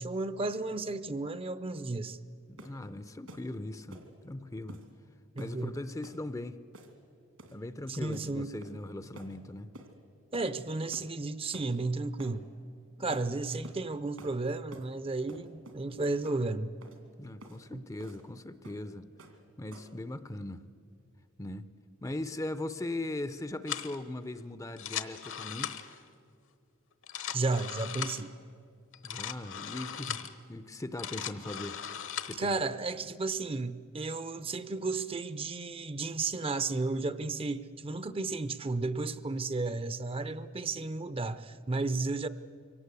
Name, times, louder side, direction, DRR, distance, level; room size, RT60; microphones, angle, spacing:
voice 1, 0.0-2.2 5.4-5.7 7.9-8.5 10.3-12.5 13.0-16.7 17.7-17.8 27.3-28.3 30.1-30.2 32.4-42.3, right 3 dB, 25° right, 14 dB, 0.6 m, -33 dB
voice 2, 2.5-4.8 5.4-6.6 7.5-9.7 13.0-13.1 17.2-19.1 19.6-20.6 21.4-21.7 22.0-25.9 29.0-31.8 32.3-32.6, left 1 dB, 15° left, 13 dB, 0.5 m, -39 dB
sound 1, 2.6-2.8 3.3-3.5 3.9-4.1 4.7-4.9 5.4-5.6 6.0-6.2 6.7-7.0 7.4-7.6 8.1-8.3 8.6-8.9 9.2-9.3 9.7-9.9 10.3-10.5 10.9-11.1 11.5-11.7 12.2-12.4 13.1-13.3 13.6-13.8 14.2-14.4 14.7-14.9 15.3-15.8 16.2-16.4 16.8-17.0 17.4-17.6 18.0-18.2 18.6-18.9 19.2-19.4 19.7-20.0, right 1 dB, 75° right, 2.6 m, -50 dB
sound 2, 23.7-24.0 24.7-26.0 26.9-28.3 28.9-30.3 30.8-32.4, left 9 dB, 65° left, 1.1 m, -38 dB
23.5 x 18.0 x 8.3 m, 2.5 s
head